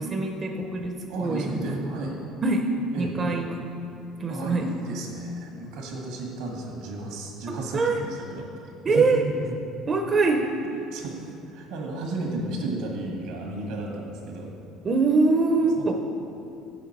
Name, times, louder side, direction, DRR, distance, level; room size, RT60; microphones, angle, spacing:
voice 1, 0.0-1.8 2.4-2.6 3.0-3.5 4.2-4.7 7.7-8.0 8.9-9.2 9.9-10.5 14.8-15.9, right 3 dB, 25° right, 3 dB, 0.5 m, -23 dB
voice 2, 1.1-2.2 2.9-3.3 4.3-8.5 8.9-9.5 10.9-14.5 15.8-15.9, right 2 dB, 80° right, 0 dB, 1.4 m, -33 dB
7.5 x 5.8 x 4.2 m, 2.7 s
cardioid pair, 130°, 0 cm